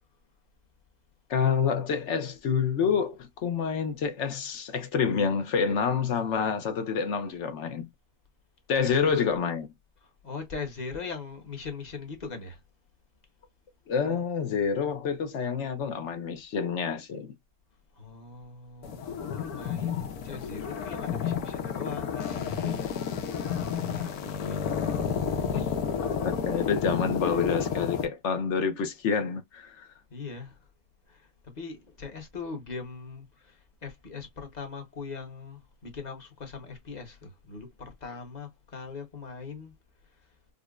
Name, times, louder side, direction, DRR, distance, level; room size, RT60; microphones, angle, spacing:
voice 1, 1.3-7.9 8.7-9.7 13.9-17.3 25.5-25.7 26.2-29.9, left 6 dB, 60° left, 0.8 m, -28 dB
voice 2, 8.7-9.1 10.0-12.6 17.9-24.9 25.3-25.8 30.1-30.7 31.1-39.7 40.1-40.2, left 4 dB, 30° left, 1.0 m, -41 dB
sound 1, 18.8-28.0, left 7 dB, 80° left, 1.3 m, -31 dB
5.1 x 2.1 x 2.3 m
omnidirectional pair, 1.6 m